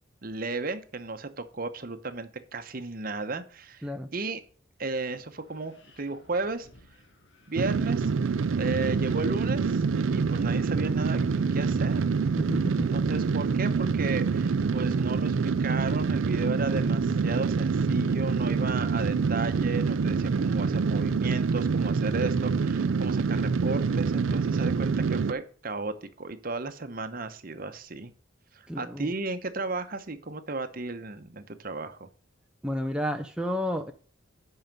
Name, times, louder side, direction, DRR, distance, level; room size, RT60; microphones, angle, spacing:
voice 1, 0.2-4.4 4.8-6.7 7.5-8.1 8.6-9.8 10.1-12.0 12.7-28.1 28.5-32.1, right 3 dB, 45° right, 10 dB, 0.9 m, -34 dB
Wind, 4.9-14.8, left 1 dB, 60° left, 1.9 m, -56 dB
sound 1, 7.6-25.3, right 5 dB, 75° right, 0.4 m, -26 dB
voice 2, 12.4-12.9 28.7-29.1 32.6-33.9, equal, 5° right, 5 dB, 0.5 m, -31 dB
9.4 x 5.6 x 5.3 m, 0.43 s
head